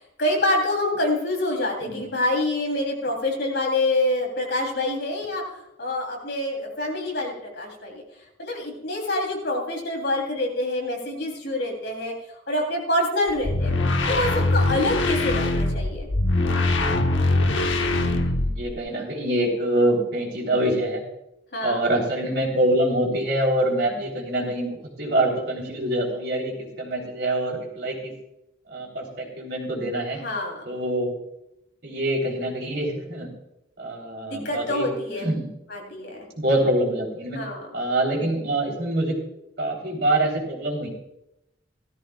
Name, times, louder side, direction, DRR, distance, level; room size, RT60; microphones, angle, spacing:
voice 1, 0.2-8.0 8.4-12.1 12.5-13.7 14.1-16.1 21.5-21.8 30.2-30.6 34.2-35.3 35.7-36.2 37.3-37.7, left 1 dB, 65° left, 0 dB, 3.4 m, -26 dB
voice 2, 1.8-2.1 17.8-21.0 21.6-28.1 28.7-30.2 30.7-31.1 31.8-33.3 33.8-34.9 35.2-35.5 36.4-37.4 37.7-39.2 39.6-40.9, right 1 dB, 60° right, -2 dB, 3.6 m, -25 dB
sound 1, 13.3-18.8, left 2 dB, 85° left, 1.0 m, -22 dB
16.5 x 13.5 x 2.4 m, 0.83 s
head